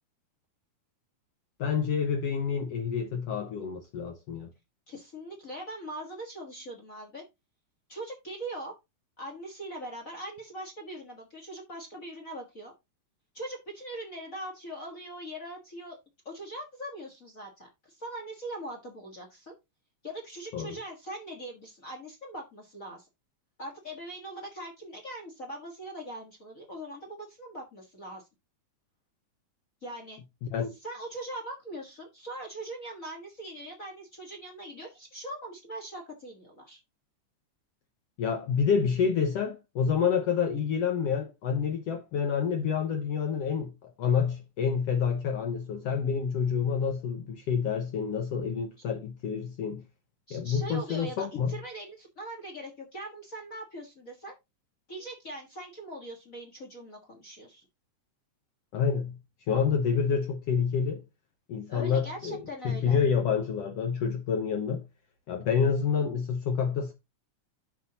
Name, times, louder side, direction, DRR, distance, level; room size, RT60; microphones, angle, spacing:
voice 1, 1.6-4.5 20.5-20.8 30.5-30.7 38.2-49.8 50.3-51.6 58.7-59.2 59.5-61.0 61.5-64.8 65.3-66.9, left 6 dB, 65° left, 1.7 m, -28 dB
voice 2, 4.9-7.2 7.9-8.8 9.2-12.7 13.3-16.0 16.2-19.5 20.0-23.1 23.6-28.3 29.8-30.2 30.8-36.8 50.3-54.3 54.9-57.6 61.7-63.0, right 1 dB, 35° left, 1.3 m, -41 dB
10.5 x 5.6 x 2.8 m
omnidirectional pair, 3.5 m